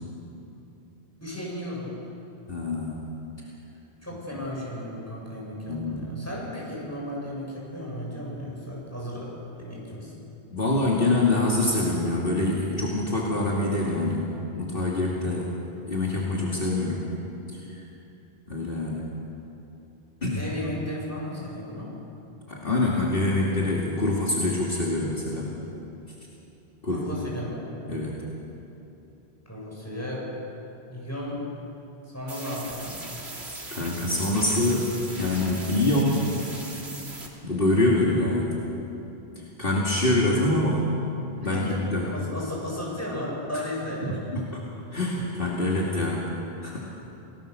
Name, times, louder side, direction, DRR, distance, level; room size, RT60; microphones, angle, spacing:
voice 1, 1.2-1.9 4.0-10.1 20.4-21.9 26.9-27.7 29.5-30.3 30.9-31.4 32.1-33.0 41.4-41.8 42.1-44.2, left 1 dB, 15° left, -4 dB, 7.4 m, -34 dB
voice 2, 2.5-3.0 5.7-6.1 10.5-14.3 14.5-15.5 15.9-17.1 18.5-19.1 20.2-20.4 22.5-25.5 26.8-27.0 27.9-28.1 33.8-36.3 37.4-38.5 39.6-40.9 41.3-42.1 43.5-43.6 44.0-44.6 44.9-46.3 46.6-46.8, left 2 dB, 55° left, -4 dB, 2.8 m, -25 dB
sound 1, 32.3-37.3, right 2 dB, 70° right, 3.1 m, -39 dB
29.0 x 19.0 x 6.9 m, 3.0 s
omnidirectional pair, 1.1 m